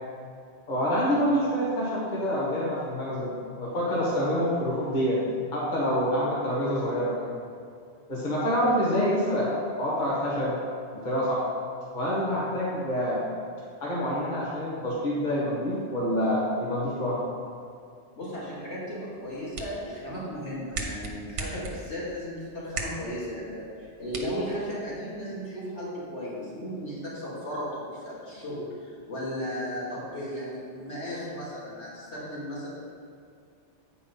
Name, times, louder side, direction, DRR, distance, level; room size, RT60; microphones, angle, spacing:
voice 1, 0.7-5.2 5.5-7.3 8.1-10.6 11.0-11.4 11.9-13.2 13.8-17.2, equal, 40° left, -7 dB, 1.7 m, -27 dB
voice 2, 18.2-23.7 24.0-28.7 29.1-32.7, equal, 75° left, -8 dB, 2.7 m, -35 dB
sound 1, 19.1-25.1, right 3 dB, 85° right, 1.3 m, -40 dB
8.7 x 4.8 x 5.5 m, 2.3 s
omnidirectional pair, 1.2 m